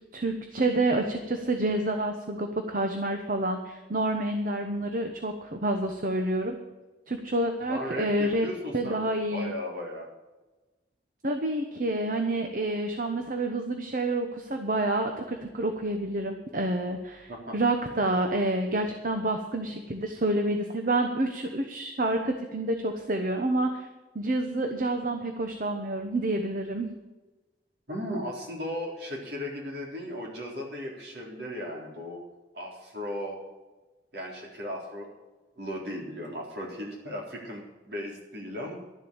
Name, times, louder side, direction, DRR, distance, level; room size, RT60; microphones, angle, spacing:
voice 1, 0.1-6.5 7.1-8.5 8.7-9.5 11.2-23.9 24.1-26.9, right 2 dB, 50° right, 5 dB, 1.0 m, -28 dB
voice 2, 7.7-10.1 17.3-17.5 17.9-18.0 27.9-32.2 32.5-33.4 34.1-35.1 35.6-38.7, left 1 dB, 65° right, -1 dB, 3.9 m, -36 dB
12.0 x 7.5 x 8.8 m, 1.2 s
head